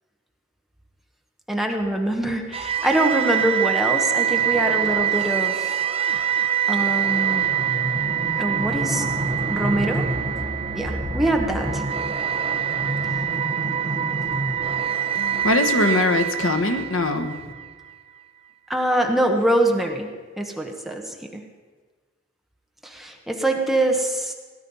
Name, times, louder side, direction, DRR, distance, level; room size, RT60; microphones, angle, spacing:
voice 1, 1.5-5.8 6.7-7.5 8.4-9.0 9.5-10.1 10.7-11.8 18.7-21.4 22.8-24.3, right 1 dB, ahead, 2 dB, 1.2 m, -24 dB
sound 1, 2.5-17.7, right 7 dB, 30° right, 1.0 m, -24 dB
voice 2, 15.1-17.5, left 2 dB, 85° left, 6 dB, 1.3 m, -22 dB
17.5 x 11.5 x 5.5 m, 1.4 s
head